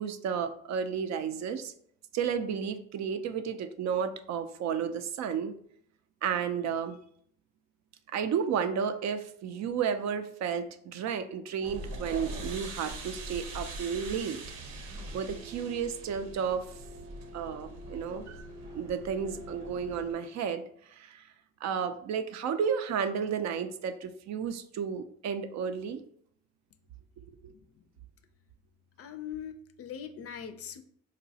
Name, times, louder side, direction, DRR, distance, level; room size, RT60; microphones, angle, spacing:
voice 1, 0.0-1.7 2.1-5.5 6.2-7.0 8.1-14.4 14.8-14.9 15.1-16.7 17.3-18.4 18.7-20.6 20.9-21.3 21.6-26.0 27.2-27.5, right 7 dB, 55° right, 9 dB, 0.4 m, -32 dB
sound 1, 11.6-20.1, right 2 dB, 70° right, 0.8 m, -42 dB
voice 2, 27.4-27.8 29.0-30.8, left 8 dB, 45° left, 8 dB, 0.4 m, -42 dB
3.9 x 2.1 x 2.7 m, 0.64 s
supercardioid pair, 70°, 33 cm